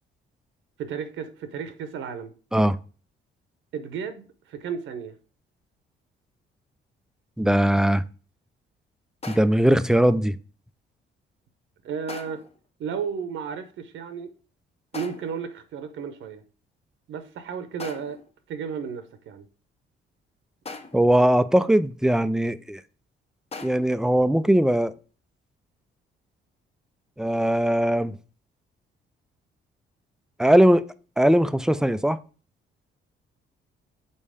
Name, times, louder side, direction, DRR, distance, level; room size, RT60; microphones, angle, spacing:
voice 1, 0.8-2.3 3.7-5.2 11.8-12.4 12.8-14.3 14.9-16.4 17.1-18.2 18.5-19.5, right 7 dB, 75° right, 0.9 m, -33 dB
voice 2, 7.4-8.0 9.3-10.4 20.9-22.8 23.6-24.9 27.2-28.2 30.4-30.9 31.2-32.2, right 1 dB, 5° right, 0.4 m, -20 dB
sound 1, 9.2-9.7 12.1-12.6 14.9-15.5 17.8-18.3 20.7-21.2 23.5-24.0, left 3 dB, 30° left, 0.9 m, -40 dB
5.5 x 4.2 x 5.0 m
cardioid pair, 90°, 20 cm